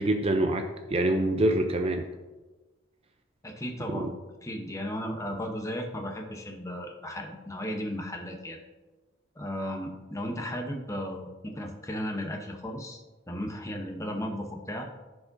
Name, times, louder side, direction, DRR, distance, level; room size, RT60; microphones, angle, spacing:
voice 1, 0.0-2.0 3.9-4.1, right 1 dB, 30° right, 5 dB, 0.5 m, -26 dB
voice 2, 3.4-4.2 4.4-8.6 9.4-14.9, equal, 15° left, 3 dB, 0.8 m, -35 dB
14.5 x 4.9 x 2.6 m, 1.2 s
head